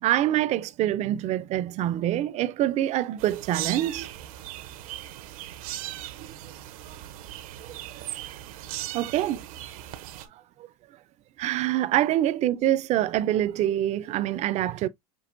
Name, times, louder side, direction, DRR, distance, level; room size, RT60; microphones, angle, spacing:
voice 1, 0.0-4.1 6.2-6.3 6.8-7.0 7.9-8.1 8.9-9.4 11.4-14.9, right 13 dB, 40° right, 0.4 m, -25 dB
sound 1, 3.2-10.3, right 13 dB, 75° right, 0.7 m, -38 dB
6.1 x 2.8 x 2.5 m
supercardioid pair, 120°, 18 cm